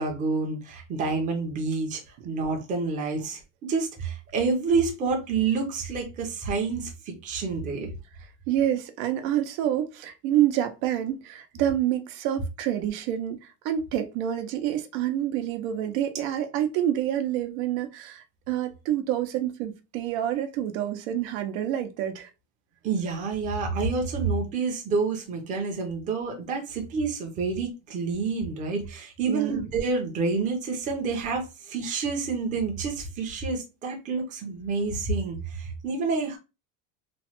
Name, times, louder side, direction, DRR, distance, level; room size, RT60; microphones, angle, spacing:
voice 1, 0.0-3.4 3.7-7.9 22.8-36.4, right 4 dB, 20° right, 0.5 m, -28 dB
voice 2, 8.5-22.3 29.3-29.7, right 11 dB, 85° right, 0.7 m, -27 dB
3.1 x 2.1 x 2.8 m
cardioid pair, 170°, 40 cm